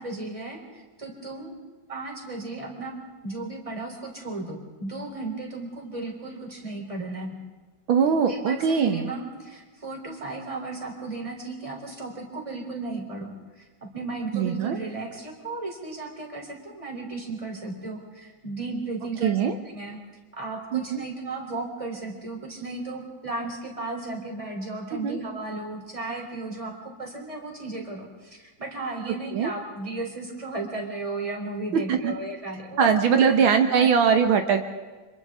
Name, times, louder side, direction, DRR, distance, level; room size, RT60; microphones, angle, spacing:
voice 1, 0.0-1.6 1.9-7.4 8.3-19.4 19.7-20.0 20.3-32.9 33.2-33.9, right 2 dB, 15° right, 1 dB, 3.5 m, -35 dB
voice 2, 7.9-9.1 14.3-14.8 19.2-19.6 20.7-21.0 25.0-25.2 29.3-29.5 31.9-32.1 32.8-34.6, right 6 dB, 80° right, 6 dB, 1.9 m, -21 dB
30.0 x 26.0 x 3.7 m, 1.3 s
omnidirectional pair, 2.2 m